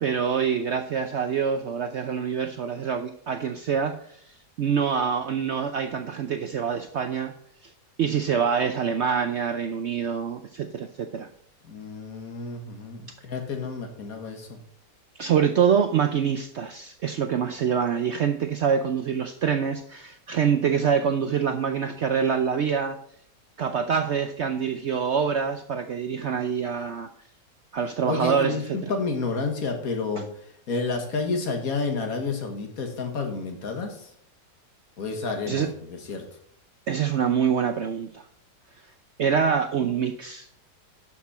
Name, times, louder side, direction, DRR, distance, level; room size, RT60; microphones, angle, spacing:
voice 1, 0.0-4.2 4.6-7.3 8.0-11.3 15.2-23.0 23.6-27.1 27.7-28.9 35.4-35.7 36.9-38.2 39.2-40.5, right 7 dB, 80° right, 8 dB, 0.6 m, -25 dB
voice 2, 11.6-14.6 28.1-30.3 30.7-34.1 35.0-36.2, left 4 dB, 55° left, 4 dB, 1.9 m, -30 dB
12.0 x 6.0 x 4.2 m, 0.65 s
omnidirectional pair, 1.8 m